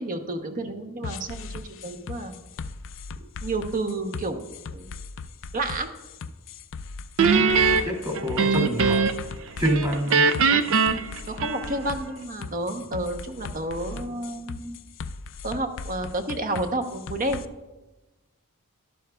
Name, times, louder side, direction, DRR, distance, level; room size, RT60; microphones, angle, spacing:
voice 1, 0.0-2.4 3.4-4.5 4.7-4.9 5.5-5.9 8.5-8.6 11.3-14.8 15.4-17.5, right 2 dB, 40° right, 6 dB, 0.9 m, -30 dB
sound 1, 1.0-17.5, left 4 dB, 60° left, 0.4 m, -38 dB
Guitar, 7.2-9.3 9.6-12.0, right 5 dB, 60° right, 0.5 m, -21 dB
voice 2, 7.8-9.0 9.6-10.2, right 1 dB, 20° right, 0 dB, 2.4 m, -26 dB
12.5 x 11.5 x 2.3 m, 1.1 s
head